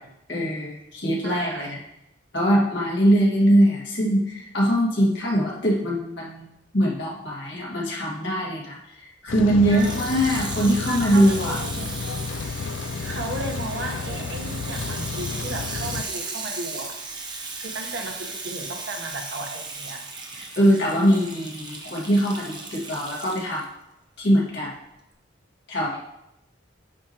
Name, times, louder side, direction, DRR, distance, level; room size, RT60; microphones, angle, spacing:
voice 1, 0.3-1.8 2.3-6.5 6.7-11.6 20.3-23.6 24.2-24.7 25.7-26.0, equal, 65° left, -4 dB, 2.1 m, -22 dB
voice 2, 1.2-1.7 9.7-10.3 10.8-12.0 13.0-16.9 17.6-20.1, right 2 dB, 85° right, 2 dB, 1.2 m, -35 dB
Rain, 9.3-16.0, left 4 dB, 85° left, 0.4 m, -31 dB
Water tap faucet / Sink (filling or washing), 9.6-23.6 24.3-24.4, right 3 dB, 25° right, 0.7 m, -36 dB
9.6 x 4.9 x 3.0 m, 0.84 s
head